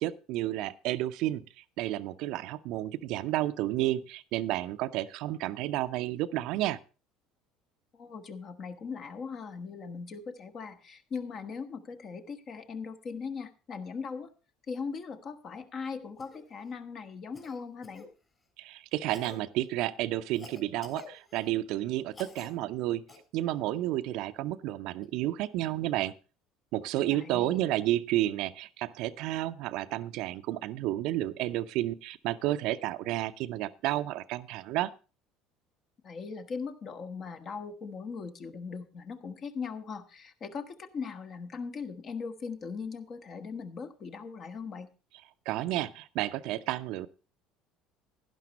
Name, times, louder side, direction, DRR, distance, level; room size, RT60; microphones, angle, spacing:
voice 1, 0.0-6.8 18.6-23.0 23.3-26.1 26.7-34.9 45.5-47.1, right 15 dB, 65° right, 13 dB, 0.5 m, -31 dB
voice 2, 7.9-14.3 14.7-18.1 27.0-27.6 36.0-44.9, left 5 dB, 45° left, 8 dB, 1.4 m, -39 dB
Cough, 16.2-16.4 17.3-18.1 19.1-19.4 20.3-21.5 22.1-22.5 23.1-23.2 25.0-25.1, left 4 dB, 30° left, 3.3 m, -48 dB
11.5 x 10.5 x 4.1 m, 0.33 s
hypercardioid pair, 70°, 0 cm